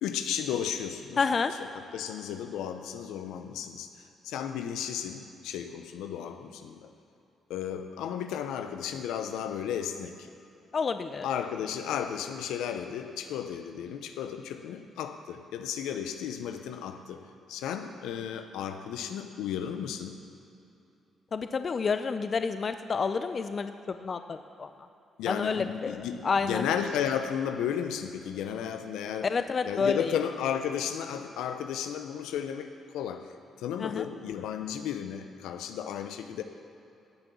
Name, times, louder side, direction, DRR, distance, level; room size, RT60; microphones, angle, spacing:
voice 1, 0.0-1.2 1.6-3.9 4.2-6.9 7.5-10.3 11.2-17.2 17.5-20.1 25.2-29.3 29.6-33.2 33.6-36.4, left 8 dB, 80° left, 8 dB, 0.7 m, -34 dB
voice 2, 1.2-1.5 10.7-11.3 21.3-23.7 24.0-24.7 25.3-26.0 26.2-26.7 29.2-30.1 33.8-34.1, left 5 dB, 50° left, 9 dB, 0.6 m, -29 dB
17.5 x 6.1 x 7.0 m, 2.8 s
supercardioid pair, 55°, 0 cm